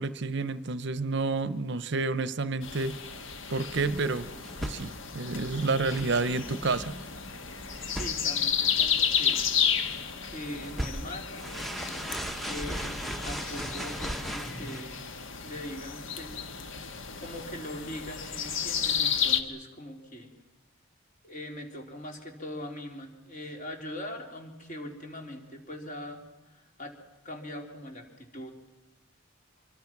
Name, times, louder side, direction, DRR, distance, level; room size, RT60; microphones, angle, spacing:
voice 1, 0.0-3.0 3.5-4.3 4.6-7.0, right 3 dB, 55° right, 15 dB, 0.7 m, -29 dB
sound 1, 2.6-19.4, left 7 dB, 65° left, 1.5 m, -32 dB
sound 2, 3.7-14.8, equal, ahead, 0.8 m, -39 dB
voice 2, 7.9-9.4 10.2-11.5 12.5-15.0 15.4-16.4 16.8-20.3 21.2-26.9 27.2-28.5, left 1 dB, 40° left, 3 dB, 3.6 m, -41 dB
25.5 x 24.0 x 6.0 m, 1.1 s
head